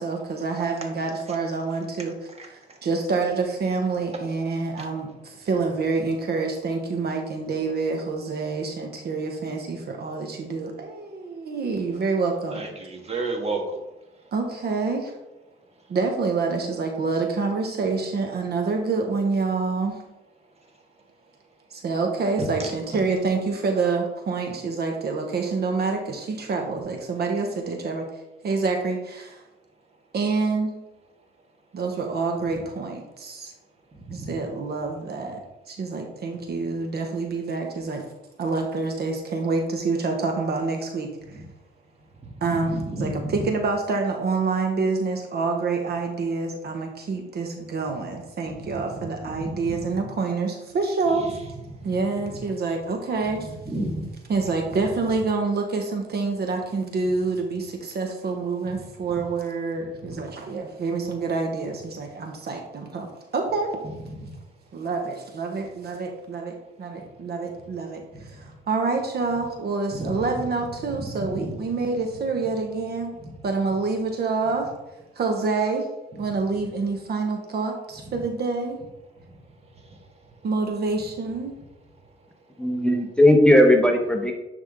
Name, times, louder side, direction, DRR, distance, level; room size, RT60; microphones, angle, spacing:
voice 1, 0.0-2.1 2.4-12.6 14.3-15.1 15.9-20.0 21.7-28.1 28.4-29.4 30.1-30.7 31.7-33.5 34.1-35.4 35.7-38.0 38.4-41.1 42.4-51.4 51.8-53.5 54.3-63.1 63.3-63.7 64.7-73.1 73.4-74.7 75.2-75.9 76.2-78.8 80.4-81.5, right 4 dB, 55° right, 3 dB, 1.1 m, -27 dB
voice 2, 12.5-13.8 42.6-43.2 48.6-49.1 49.4-49.7 53.6-54.0 70.0-70.1, right 2 dB, 30° right, 1 dB, 1.7 m, -31 dB
voice 3, 82.6-84.3, left 1 dB, 5° left, 2 dB, 0.9 m, -17 dB
10.0 x 3.6 x 3.6 m, 0.99 s
cardioid pair, 90°, 20 cm